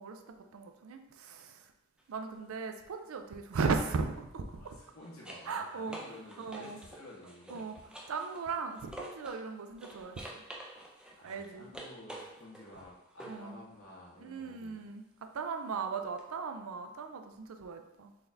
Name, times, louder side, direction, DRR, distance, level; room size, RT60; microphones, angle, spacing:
voice 1, 0.0-1.6 2.1-4.8 5.5-6.0 6.4-6.8 7.5-7.7 8.1-10.4 11.2-11.7 13.2-13.6 14.2-18.1, right 4 dB, 70° right, 6 dB, 0.4 m, -37 dB
sound 1, 2.0-2.2 4.5-9.5 9.8-13.5 16.2-16.3, right 1 dB, 5° right, 0.3 m, -49 dB
voice 2, 4.6-7.8 11.1-14.9, left 1 dB, 80° left, -5 dB, 1.4 m, -52 dB
3.9 x 2.7 x 3.4 m, 0.90 s
head